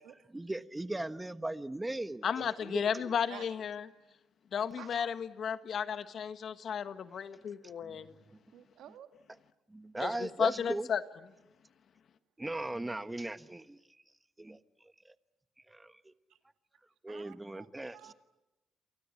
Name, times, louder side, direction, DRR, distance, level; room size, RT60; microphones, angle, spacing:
voice 1, 0.3-3.1 7.8-8.0 9.7-10.9 12.4-13.8 14.4-14.6 15.0-15.1 15.7-16.1 17.0-18.1, right 2 dB, 15° right, 11 dB, 1.3 m, -38 dB
voice 2, 2.2-3.8 4.5-8.1 10.0-11.0, left 7 dB, 60° left, 11 dB, 1.6 m, -34 dB
voice 3, 4.8-5.1 8.5-9.1 16.3-16.4 17.1-17.7 17.9-18.1, right 11 dB, 85° right, 8 dB, 2.0 m, -51 dB
29.5 x 24.0 x 8.5 m, 0.96 s
cardioid pair, 90°, 0 cm